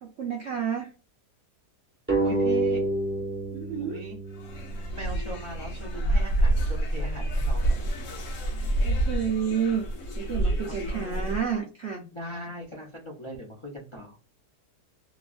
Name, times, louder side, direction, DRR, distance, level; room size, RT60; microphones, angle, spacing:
voice 1, 0.0-0.9 3.5-4.0 8.8-9.8 10.2-12.1, right 7 dB, 65° right, 0 dB, 0.7 m, -30 dB
sound 1, 2.1-5.3, right 2 dB, 10° right, 0.6 m, -28 dB
voice 2, 2.2-2.9 3.8-4.2 4.9-8.1 10.6-11.4 12.1-14.2, equal, 30° left, -2 dB, 0.5 m, -40 dB
sound 2, 4.3-11.5, right 1 dB, 60° left, 1.1 m, -28 dB
3.0 x 2.3 x 2.4 m, 0.34 s
omnidirectional pair, 1.7 m